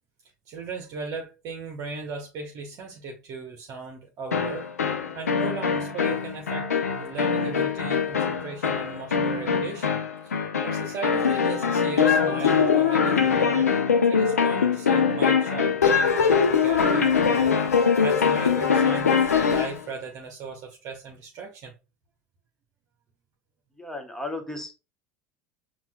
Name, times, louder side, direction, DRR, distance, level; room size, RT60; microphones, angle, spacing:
voice 1, 0.5-4.7 5.1-13.7 14.0-21.7, right 4 dB, 45° right, 0.9 m, -37 dB
sound 1, 4.3-19.8, left 6 dB, 80° left, 0.7 m, -22 dB
voice 2, 23.8-24.7, left 2 dB, 5° left, 1.0 m, -34 dB
7.1 x 2.5 x 2.2 m
figure-of-eight pair, 70°, 8 cm